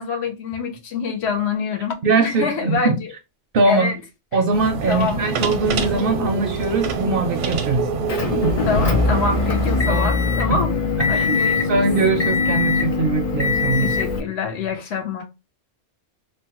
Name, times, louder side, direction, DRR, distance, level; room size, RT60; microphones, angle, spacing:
voice 1, 0.0-3.1 3.6-4.0 4.3-4.4 4.9-5.3 8.6-10.7 11.1-11.9 13.8-15.2, left 5 dB, 70° left, 0.9 m, -26 dB
voice 2, 2.0-3.0 3.5-3.9 4.3-7.9 8.4-8.6 9.9-10.1 10.5-10.6 11.0-11.4 11.7-14.0, right 3 dB, 60° right, 0.6 m, -21 dB
sound 1, 4.5-9.8, right 5 dB, 80° right, 0.9 m, -25 dB
Motor vehicle (road) / Engine, 8.1-14.2, left 4 dB, 45° left, 0.5 m, -21 dB
3.1 x 2.1 x 2.8 m
omnidirectional pair, 1.2 m